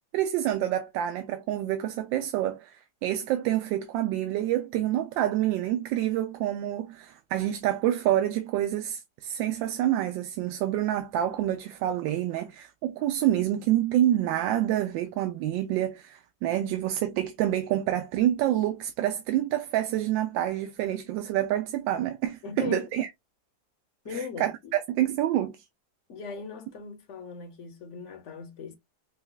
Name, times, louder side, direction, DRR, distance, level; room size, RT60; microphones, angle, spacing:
voice 1, 0.1-23.1 24.1-25.6, right 12 dB, 80° right, 1.3 m, -27 dB
voice 2, 22.4-23.0 24.0-24.7 26.1-28.7, left 6 dB, 55° left, 0.9 m, -39 dB
5.1 x 2.3 x 2.3 m
omnidirectional pair, 2.1 m